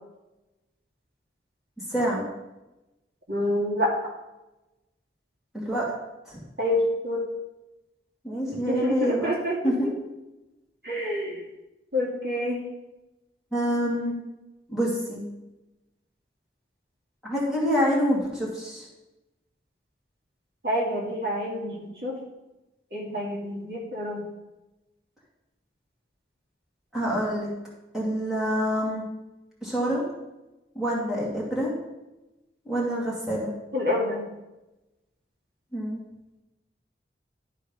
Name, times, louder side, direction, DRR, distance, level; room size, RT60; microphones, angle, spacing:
voice 1, 1.9-2.2 5.5-5.9 6.2-6.4 8.2-9.3 9.6-9.9 13.5-14.1 14.7-15.2 17.2-18.9 26.9-27.5 27.9-29.0 29.6-30.0 30.7-31.7 32.7-33.5 35.7-36.0, equal, 5° right, -6 dB, 2.3 m, -26 dB
voice 2, 3.3-3.9 6.6-7.3 8.7-9.9 10.8-11.4 11.9-12.6 20.6-22.2 22.9-24.2 33.7-34.3, left 1 dB, 60° right, -3 dB, 2.3 m, -27 dB
12.0 x 4.2 x 5.3 m, 0.99 s
head